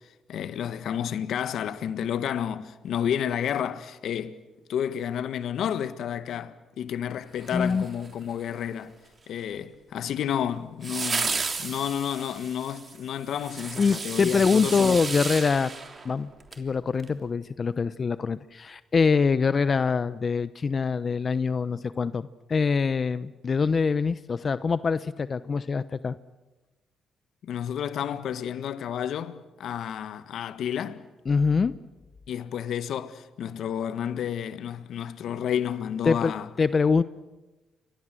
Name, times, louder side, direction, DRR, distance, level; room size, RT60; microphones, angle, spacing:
voice 1, 0.3-4.4 4.7-8.9 9.3-15.0 27.4-31.0 32.3-36.5, left 9 dB, 70° left, 1.6 m, -31 dB
sound 1, 7.4-8.3 10.8-16.6 17.0-17.1, right 4 dB, 35° right, 3.4 m, -33 dB
voice 2, 7.5-7.8 13.8-15.7 16.0-16.3 16.6-26.1 31.3-31.7 36.0-37.0, left 5 dB, 40° left, 0.8 m, -24 dB
29.5 x 24.0 x 7.7 m
cardioid pair, 90°, 0 cm